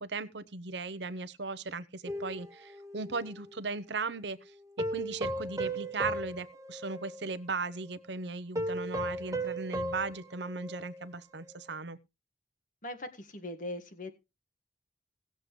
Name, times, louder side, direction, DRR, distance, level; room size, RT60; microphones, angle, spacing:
voice 1, 0.0-4.5 4.9-12.0, right 4 dB, 70° right, 0.9 m, -37 dB
sound 1, 2.1-3.6 4.8-7.4 7.7-7.9 8.6-11.1 11.5-11.6, right 1 dB, 20° right, 0.9 m, -36 dB
voice 2, 12.8-14.1, left 1 dB, 45° left, 1.8 m, -40 dB
18.0 x 7.7 x 3.2 m
head